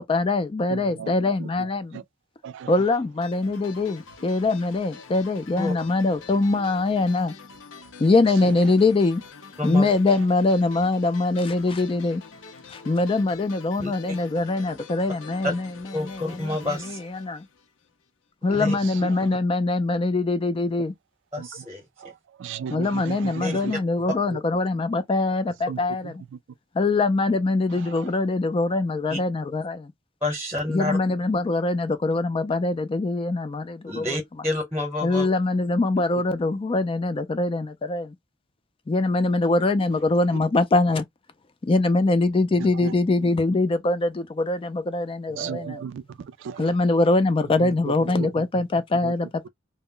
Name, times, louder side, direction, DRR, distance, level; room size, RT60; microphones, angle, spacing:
voice 1, 0.0-2.0 2.7-7.3 8.0-9.2 9.6-12.2 12.7-17.5 18.4-20.9 22.7-26.1 26.7-29.9 30.7-34.2 35.0-38.1 38.9-41.0 41.6-45.8 46.6-49.5, left 2 dB, 30° left, 0.4 m, -23 dB
voice 2, 0.7-1.7 1.9-2.0 2.4-2.8 8.4-8.8 18.5-19.3 21.4-21.7 22.0-23.8 24.3-24.4 25.7-26.1 27.7-28.1 42.6-42.9 43.2-43.3 45.3-46.8 47.6-48.4 49.0-49.1, right 7 dB, 65° right, 0.3 m, -36 dB
sound 1, 3.2-18.0, left 5 dB, 70° left, 0.6 m, -45 dB
voice 3, 9.6-9.9 13.8-14.2 15.9-17.0 18.5-18.7 21.3-21.8 23.4-23.6 29.1-29.2 30.2-31.0 33.9-35.3, left 1 dB, 10° right, 0.9 m, -29 dB
2.1 x 2.1 x 3.6 m
head